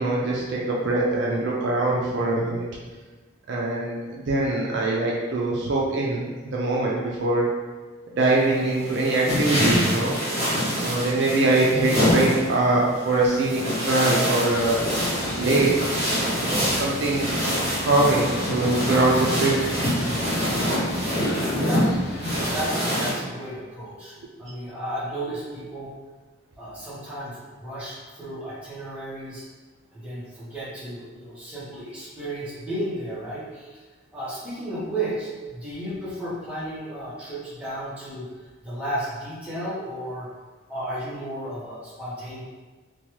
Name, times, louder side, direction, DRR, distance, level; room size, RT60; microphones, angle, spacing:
voice 1, 0.0-2.6 3.5-6.2 6.5-7.5 8.2-10.2 10.8-14.8 15.4-15.8 16.4-17.3 17.8-19.7, right 2 dB, 55° right, -4 dB, 0.4 m, -23 dB
sound 1, 8.2-23.1, equal, 30° right, 1.4 m, -25 dB
sound 2, 14.5-22.7, left 2 dB, 50° left, 0.3 m, -38 dB
Bass guitar, 16.5-22.8, left 2 dB, 80° left, 1.2 m, -47 dB
voice 2, 21.5-21.9 22.3-25.9 26.6-29.4 29.9-33.8 34.1-38.3 38.6-40.3 40.7-42.4, right 1 dB, 5° right, -10 dB, 0.9 m, -33 dB
3.0 x 2.2 x 2.9 m, 1.3 s
head